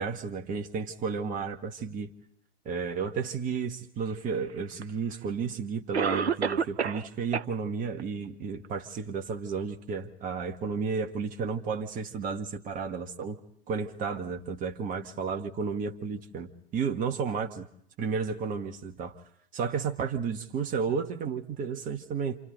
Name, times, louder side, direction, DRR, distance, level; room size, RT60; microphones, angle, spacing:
voice 1, 0.0-2.1 2.6-13.4 13.7-17.7 18.0-19.2 19.5-22.4, right 5 dB, 25° right, 6 dB, 1.5 m, -32 dB
Cough, 4.8-4.9 5.9-7.1 7.3-7.4 8.0-8.1 8.6-8.7, right 6 dB, 80° right, 0.8 m, -28 dB
28.5 x 28.0 x 4.0 m, 0.69 s
figure-of-eight pair, 100°, 32 cm